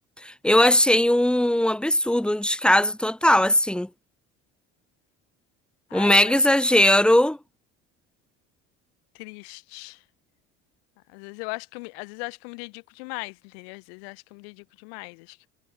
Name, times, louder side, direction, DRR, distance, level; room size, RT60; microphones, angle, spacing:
voice 1, 0.2-3.9 5.9-7.4, left 1 dB, 5° left, 2.4 m, -19 dB
voice 2, 5.9-6.8 9.1-10.0 11.1-15.5, left 33 dB, 85° left, 2.8 m, -39 dB
supercardioid pair, 85°, 30 cm